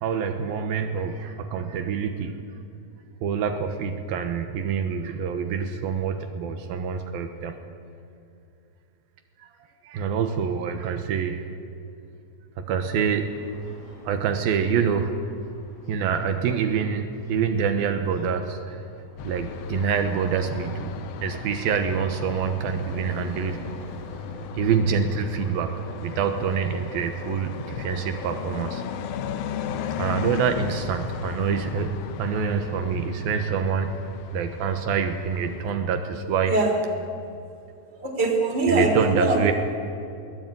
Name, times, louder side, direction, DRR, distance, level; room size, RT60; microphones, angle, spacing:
voice 1, 0.0-2.4 3.2-7.6 9.9-11.4 12.6-13.4 14.1-15.1 15.9-18.8 19.2-20.9 21.2-23.6 24.5-25.7 26.0-28.8 30.0-33.9 34.3-36.5 38.7-39.5, right 6 dB, 85° right, 6 dB, 3.0 m, -26 dB
sound 1, 13.2-27.3, left 1 dB, 60° left, 8.9 m, -44 dB
sound 2, 19.2-35.7, left 8 dB, 90° left, 1.3 m, -36 dB
voice 2, 36.4-36.8 38.0-39.5, right 2 dB, 30° right, 1 dB, 4.4 m, -22 dB
22.5 x 18.5 x 9.2 m, 2.7 s
omnidirectional pair, 4.1 m